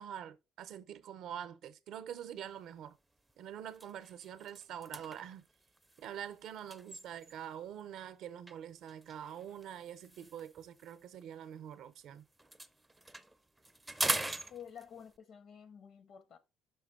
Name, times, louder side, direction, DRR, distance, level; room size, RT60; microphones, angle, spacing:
voice 1, 0.0-3.0 3.4-5.5 6.0-12.2, right 9 dB, 65° right, 0.6 m, -45 dB
sound 1, 2.5-2.7 3.2-3.3 3.7-7.6 8.5-12.0 12.3-15.2, right 2 dB, 5° right, 0.4 m, -42 dB
voice 2, 14.5-16.4, left 8 dB, 55° left, 0.7 m, -51 dB
5.7 x 5.1 x 3.6 m
cardioid pair, 130°, 0 cm